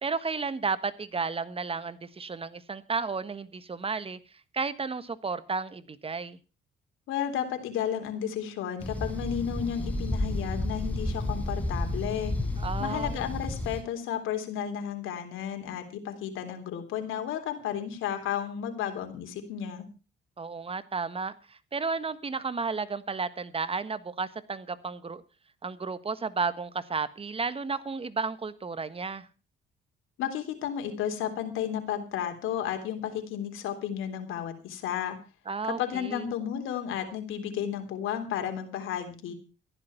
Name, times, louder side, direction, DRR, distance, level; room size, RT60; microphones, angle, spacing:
voice 1, 0.0-4.2 4.5-6.4 12.6-13.1 20.4-25.2 25.6-29.3 35.5-36.3, right 4 dB, 30° right, 14 dB, 1.4 m, -33 dB
voice 2, 7.1-12.3 12.8-19.9 30.2-35.2 35.8-39.3, left 9 dB, 85° left, 6 dB, 3.5 m, -33 dB
sound 1, 8.8-13.8, left 1 dB, 5° left, 4.1 m, -31 dB
14.5 x 11.0 x 5.8 m, 0.33 s
cardioid pair, 90°, 20 cm